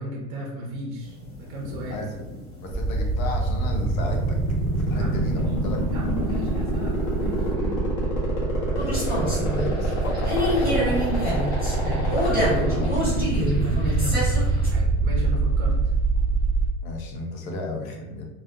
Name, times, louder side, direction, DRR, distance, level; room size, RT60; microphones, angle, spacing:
voice 1, 0.0-2.0 4.9-5.5 5.9-7.8 11.8-12.6 13.6-15.8, right 1 dB, 35° right, -1 dB, 0.5 m, -34 dB
sound 1, 1.0-7.5, left 2 dB, 45° left, 1.0 m, -41 dB
voice 2, 2.6-4.4 4.7-5.8 8.7-11.0 11.8-13.4 16.8-18.3, left 1 dB, 75° left, 1 dB, 0.7 m, -33 dB
sound 2, 2.7-16.7, right 1 dB, 30° left, 0.7 m, -25 dB
sound 3, 8.8-14.7, equal, 10° left, 1.1 m, -26 dB
2.4 x 2.0 x 2.5 m, 1.0 s
supercardioid pair, 170°, 41 cm